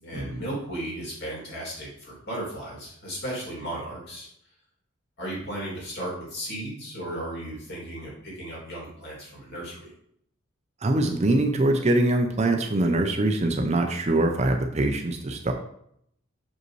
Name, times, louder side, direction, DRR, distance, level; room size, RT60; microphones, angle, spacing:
voice 1, 0.0-4.3 5.2-9.9, right 1 dB, 50° left, -4 dB, 2.6 m, -35 dB
voice 2, 10.8-15.5, right 2 dB, 30° right, 4 dB, 0.5 m, -23 dB
6.5 x 5.0 x 3.1 m, 0.71 s
head